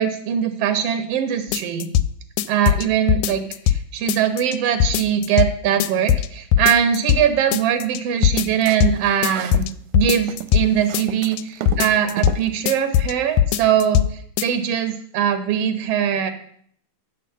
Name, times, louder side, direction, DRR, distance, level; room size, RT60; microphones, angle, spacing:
voice 1, 0.0-1.9 2.5-9.7 9.9-16.3, right 9 dB, 60° right, 9 dB, 1.9 m, -21 dB
sound 1, 1.5-2.1 2.4-3.8 4.1-4.6 4.8-5.5 5.8-6.3 6.5-7.2 7.5-8.0 8.2-8.9 9.2-10.7 10.9-11.4 11.7-12.4 12.7-13.1 13.4-14.1 14.4-14.5, left 11 dB, 85° left, 1.9 m, -19 dB
sound 2, 8.2-9.7 10.0-12.5, right 11 dB, 85° right, 2.0 m, -34 dB
12.5 x 4.4 x 7.4 m, 0.64 s
omnidirectional pair, 3.4 m